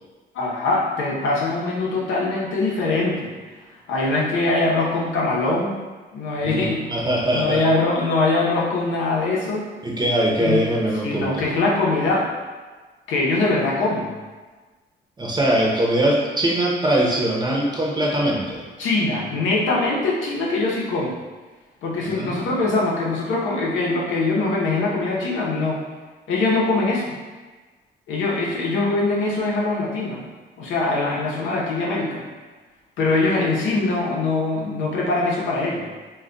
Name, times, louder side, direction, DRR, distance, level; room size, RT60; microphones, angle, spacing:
voice 1, 0.3-3.3 3.9-5.8 6.1-6.8 7.3-9.7 10.4-10.7 11.0-12.2 13.1-14.1 18.8-21.1 21.8-25.8 26.3-27.1 28.1-30.2 30.6-32.2 33.0-35.8, left 2 dB, 80° left, -3 dB, 0.7 m, -22 dB
voice 2, 6.5-7.6 9.8-11.4 15.2-18.6 22.0-22.5, right 1 dB, 20° right, -3 dB, 0.6 m, -22 dB
2.3 x 2.2 x 3.7 m, 1.3 s
cardioid pair, 90°, 20 cm